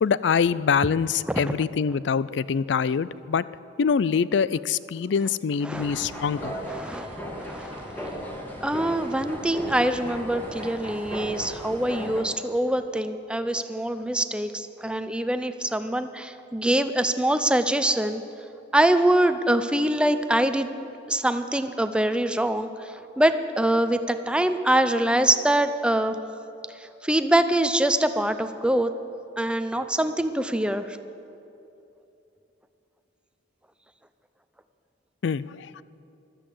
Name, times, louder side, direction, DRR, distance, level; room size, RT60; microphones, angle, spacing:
voice 1, 0.0-3.4 3.8-6.6 35.2-35.8, left 6 dB, 65° left, 18 dB, 0.4 m, -24 dB
voice 2, 5.6-6.0 6.7-7.1 7.4-7.8 8.6-18.2 18.7-20.7 21.1-22.7 23.2-26.2 27.0-28.9 29.4-31.0, right 1 dB, 5° right, 10 dB, 0.6 m, -24 dB
sound 1, 5.7-12.2, equal, 10° left, 2.2 m, -36 dB
15.0 x 12.5 x 7.8 m, 2.8 s
head